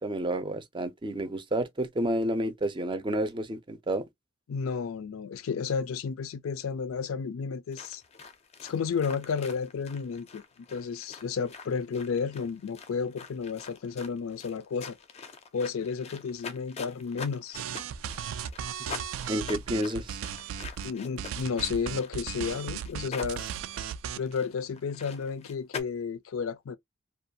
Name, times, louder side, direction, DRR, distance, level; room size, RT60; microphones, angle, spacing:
voice 1, 0.0-4.0 19.3-20.2, right 1 dB, 25° right, 0.5 m, -30 dB
voice 2, 4.5-8.0 8.6-10.4 10.7-15.0 15.5-17.6 18.9-19.1 20.8-23.5 24.2-26.8, left 5 dB, 90° left, 0.4 m, -32 dB
sound 1, 7.7-25.8, left 5 dB, 30° left, 0.4 m, -45 dB
sound 2, 17.5-20.9 21.2-24.3, right 8 dB, 80° right, 0.3 m, -36 dB
2.6 x 2.3 x 2.6 m
head